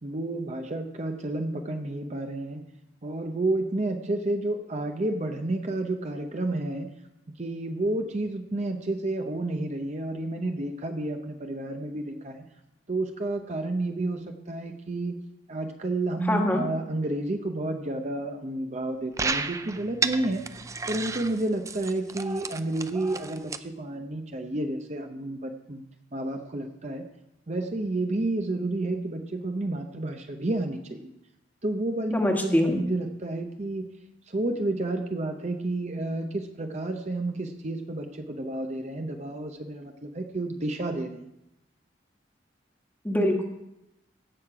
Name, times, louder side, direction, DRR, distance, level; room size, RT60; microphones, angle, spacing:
voice 1, 0.0-2.6 3.0-6.9 7.4-12.5 12.9-15.2 15.5-20.5 20.9-25.8 26.1-27.1 27.5-31.1 31.6-33.9 34.3-41.3, right 2 dB, 40° right, 5 dB, 0.7 m, -30 dB
voice 2, 16.3-16.6 32.1-32.8 43.0-43.4, left 1 dB, 10° left, 2 dB, 1.4 m, -24 dB
sound 1, 19.2-23.6, right 4 dB, 15° right, 0.4 m, -33 dB
16.5 x 6.5 x 4.8 m, 0.87 s
head